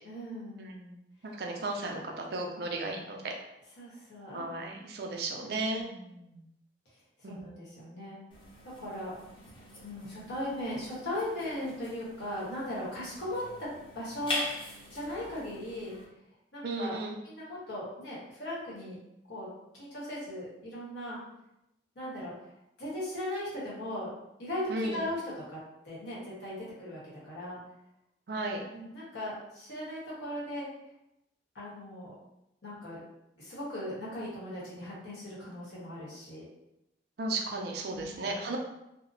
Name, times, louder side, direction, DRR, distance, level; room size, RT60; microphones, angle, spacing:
voice 1, 0.0-1.0 3.8-4.4 5.7-6.5 7.2-8.2 8.6-9.1 9.7-13.7 13.9-15.9 16.5-17.0 17.2-19.0 19.3-19.5 19.7-21.2 21.9-22.3 22.8-24.1 24.4-25.2 25.5-25.6 25.8-27.6 28.7-30.7 31.5-32.1 32.6-33.0 33.4-36.4 37.9-38.5, left 1 dB, 80° left, -7 dB, 1.1 m, -38 dB
voice 2, 1.4-3.3 4.3-5.8 7.2-7.4 16.6-17.2 24.7-25.0 28.3-28.6 37.2-38.6, right 2 dB, 60° right, 1 dB, 0.4 m, -34 dB
sound 1, 8.3-16.1, left 1 dB, 30° left, 0.4 m, -42 dB
2.7 x 2.0 x 2.6 m, 0.86 s
head